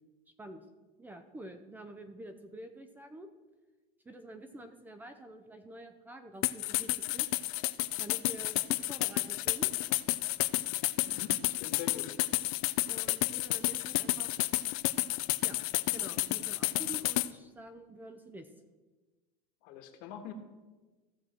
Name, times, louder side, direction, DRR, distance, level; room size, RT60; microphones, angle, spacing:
voice 1, 1.0-3.3 4.0-7.3 8.0-9.8 12.9-14.4 15.4-15.6 15.9-18.5, right 1 dB, 10° right, 8 dB, 0.6 m, -48 dB
sound 1, 6.4-17.3, left 19 dB, 80° left, 0.5 m, -31 dB
voice 2, 11.0-12.1 19.6-20.3, left 8 dB, 60° left, 5 dB, 1.5 m, -44 dB
15.5 x 6.3 x 4.3 m, 1.2 s
supercardioid pair, 150°, 18 cm